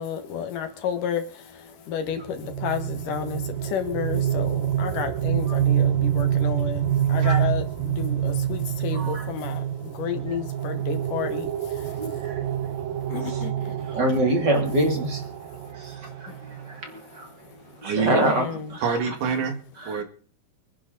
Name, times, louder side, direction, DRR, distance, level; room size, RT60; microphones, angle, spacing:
voice 1, 0.0-12.2 12.7-14.0 15.4-15.5 16.1-16.4 17.5-18.7, left 8 dB, 70° left, 8 dB, 3.0 m, -32 dB
sound 1, 2.1-16.8, right 10 dB, 80° right, 2.7 m, -27 dB
voice 2, 8.9-9.3 11.8-12.8 13.1-13.5 13.8-15.3 15.6-17.3 17.8-19.0 19.8-20.0, right 1 dB, 30° right, 3 dB, 3.4 m, -27 dB
voice 3, 17.8-18.3 18.8-19.6 19.9-20.0, right 5 dB, 65° right, 6 dB, 3.4 m, -25 dB
25.5 x 10.5 x 4.1 m, 0.44 s
omnidirectional pair, 4.1 m